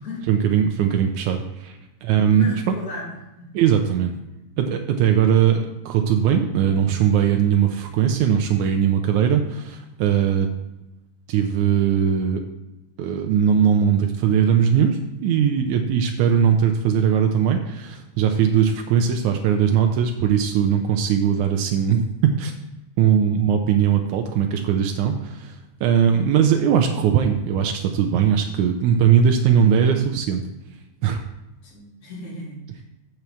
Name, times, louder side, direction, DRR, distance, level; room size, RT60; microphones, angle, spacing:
voice 1, 0.3-2.7 3.5-4.1 4.6-10.5 11.3-12.4 13.0-22.5 23.0-25.6 25.8-30.4 31.0-31.2, right 8 dB, 85° right, 5 dB, 2.0 m, -20 dB
voice 2, 2.4-3.5 26.0-26.2 31.6-32.8, left 2 dB, 30° left, -4 dB, 2.5 m, -37 dB
7.8 x 4.6 x 7.0 m, 0.96 s
omnidirectional pair, 3.4 m